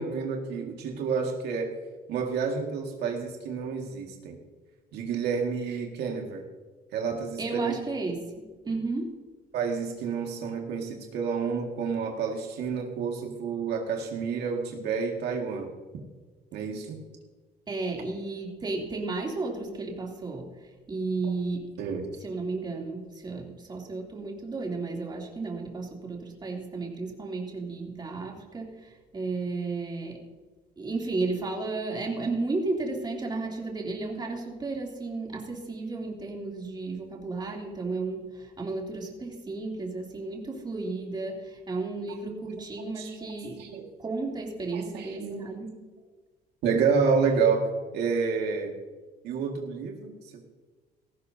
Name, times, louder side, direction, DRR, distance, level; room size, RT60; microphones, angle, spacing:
voice 1, 0.0-1.7 2.1-4.4 4.9-6.4 6.9-7.7 9.5-15.7 16.5-17.0 21.8-22.1 43.0-43.3 43.6-43.9 44.7-45.5 46.6-47.7 47.9-48.7 49.2-50.1, right 5 dB, 80° right, 2 dB, 2.0 m, -29 dB
voice 2, 7.4-9.2 17.7-21.7 22.2-30.2 30.8-43.7 44.0-45.8, right 3 dB, 25° right, -1 dB, 3.0 m, -33 dB
17.5 x 14.5 x 2.8 m, 1.3 s
cardioid pair, 110°, 17 cm